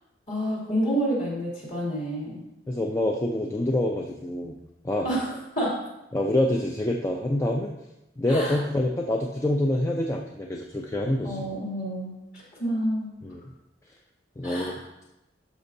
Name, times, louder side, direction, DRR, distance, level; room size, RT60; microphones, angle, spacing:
voice 1, 0.3-2.4 5.0-5.8 8.3-8.6 11.2-13.1 14.4-14.8, right 1 dB, 40° left, -5 dB, 2.7 m, -29 dB
voice 2, 2.7-4.6 4.8-5.1 6.1-7.7 8.2-11.5 13.2-13.5 14.4-14.8, left 1 dB, 15° left, 0 dB, 0.4 m, -26 dB
12.0 x 6.0 x 2.7 m, 0.92 s
head